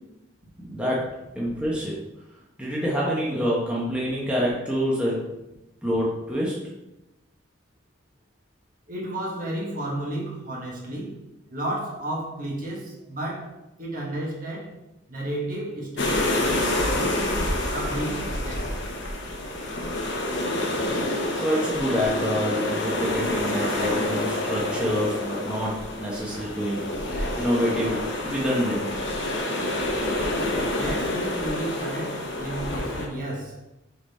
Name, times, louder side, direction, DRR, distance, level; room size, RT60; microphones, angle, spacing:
voice 1, 0.6-1.9 2.6-5.2 5.8-6.6 21.3-26.8 27.1-28.9, equal, 5° right, -6 dB, 1.0 m, -27 dB
voice 2, 8.9-11.2 11.5-14.7 15.1-16.6 16.9-18.7 30.7-33.6, right 1 dB, 45° right, -2 dB, 1.5 m, -32 dB
sound 1, 16.0-33.1, left 1 dB, 65° left, 1.1 m, -28 dB
6.5 x 4.0 x 4.2 m, 0.95 s
head